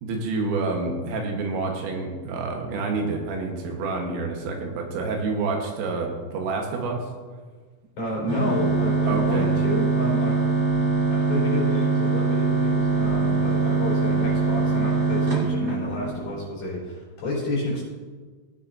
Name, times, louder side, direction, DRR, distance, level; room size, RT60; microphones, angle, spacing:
voice 1, 0.0-7.0 9.1-9.5, right 3 dB, 85° right, 1 dB, 4.0 m, -28 dB
voice 2, 8.0-10.4 11.0-17.8, equal, 40° left, -5 dB, 5.3 m, -30 dB
sound 1, 8.3-16.3, right 4 dB, 40° right, 1.2 m, -23 dB
18.5 x 9.6 x 2.7 m, 1.4 s
omnidirectional pair, 5.7 m